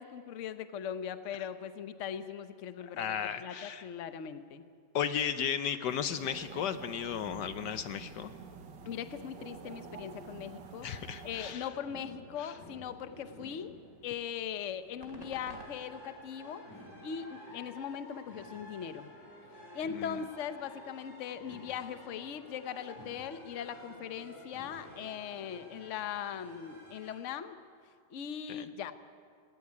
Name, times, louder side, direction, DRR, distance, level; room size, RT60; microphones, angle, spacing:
voice 1, 0.0-4.6 8.9-13.8 14.0-16.6 17.0-19.1 19.7-27.6 28.1-28.9, left 8 dB, 50° left, 10 dB, 1.1 m, -40 dB
voice 2, 2.8-3.8 4.9-8.3 10.8-11.7 12.4-12.5 19.9-20.2 28.5-28.7, left 8 dB, 70° left, 11 dB, 1.3 m, -35 dB
sound 1, 5.9-11.5, right 6 dB, 75° right, 1.8 m, -48 dB
sound 2, 10.3-15.7, right 2 dB, 50° right, 2.7 m, -58 dB
sound 3, 11.3-27.2, equal, 90° left, 7.5 m, -52 dB
18.5 x 18.0 x 9.6 m, 2.2 s
omnidirectional pair, 2.0 m